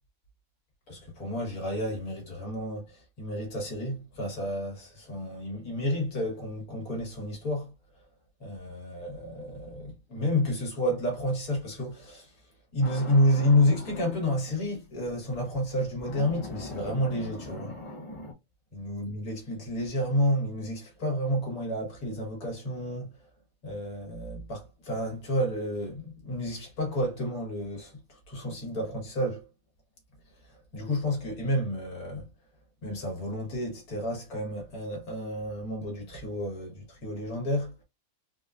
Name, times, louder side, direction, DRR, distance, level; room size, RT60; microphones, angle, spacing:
voice 1, 0.9-8.1 8.4-17.7 18.7-23.3 23.6-29.5 30.3-32.3 32.8-37.7, left 1 dB, 80° left, 2.0 m, -30 dB
sound 1, 12.8-14.2 16.0-18.3, left 2 dB, 40° left, 0.4 m, -41 dB
4.1 x 2.4 x 2.3 m
omnidirectional pair, 1.5 m